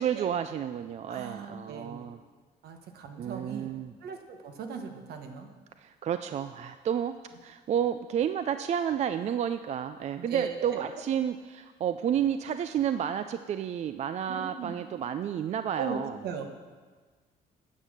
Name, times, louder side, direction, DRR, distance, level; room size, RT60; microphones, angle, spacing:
voice 1, 0.0-2.2 3.2-3.9 5.8-7.1 7.4-16.2, right 9 dB, 40° right, 10 dB, 0.4 m, -31 dB
voice 2, 1.1-2.1 2.6-3.7 4.0-5.5 10.3-10.8 14.3-14.7 15.8-16.7, right 6 dB, 70° right, 5 dB, 1.3 m, -38 dB
9.7 x 7.5 x 6.4 m, 1.4 s
cardioid pair, 110°, 17 cm